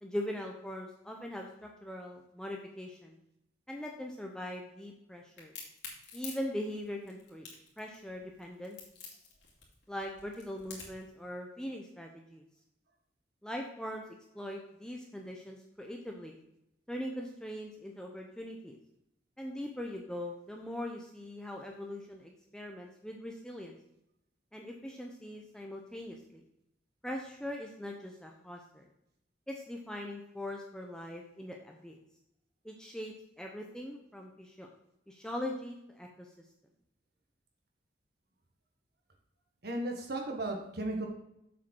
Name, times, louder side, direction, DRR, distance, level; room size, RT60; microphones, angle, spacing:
voice 1, 0.0-3.2 3.7-5.5 6.1-7.5 7.8-8.8 9.9-12.4 13.4-14.0 14.3-16.4 16.9-18.8 19.4-23.8 24.5-26.4 27.0-28.9 29.5-32.0 32.6-34.7 35.1-36.3, left 1 dB, 5° left, 1 dB, 0.7 m, -41 dB
Crack, 5.4-11.1, left 5 dB, 65° left, 2.5 m, -47 dB
voice 2, 39.6-41.1, right 1 dB, 60° right, 2 dB, 1.4 m, -35 dB
7.3 x 4.8 x 6.2 m, 0.79 s
head